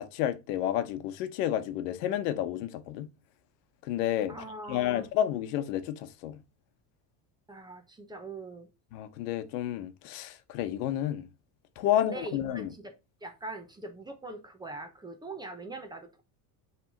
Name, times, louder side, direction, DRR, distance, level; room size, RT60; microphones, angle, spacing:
voice 1, 0.0-3.1 3.8-4.3 4.7-6.4 8.9-11.3 11.8-12.7, left 11 dB, 90° left, 1.0 m, -30 dB
voice 2, 4.3-5.1 7.5-8.7 12.0-13.0 13.2-16.2, right 2 dB, 10° right, 0.8 m, -42 dB
5.8 x 3.4 x 5.0 m
cardioid pair, 160°, 46 cm